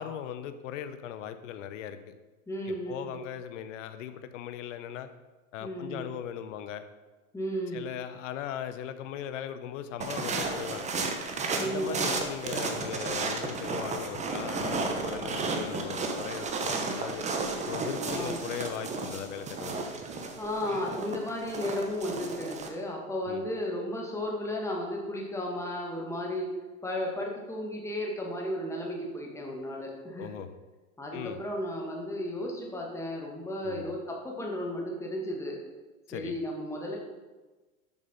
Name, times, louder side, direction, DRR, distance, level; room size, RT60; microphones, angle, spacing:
voice 1, 0.0-2.1 2.7-5.1 5.5-6.8 7.7-11.1 11.6-17.3 17.6-20.0 23.3-23.5 30.2-30.5 31.1-31.4 33.6-33.9 36.1-36.4, left 9 dB, 60° left, 10 dB, 0.8 m, -39 dB
voice 2, 2.5-3.1 5.6-6.0 7.3-7.8 11.5-12.1 18.1-18.3 20.4-26.5 26.8-30.3 31.0-35.6 36.1-37.0, left 1 dB, 5° left, -1 dB, 1.6 m, -34 dB
sound 1, 10.0-22.7, right 3 dB, 15° right, 0.9 m, -33 dB
7.2 x 6.1 x 5.4 m, 1.2 s
hypercardioid pair, 110°, 44 cm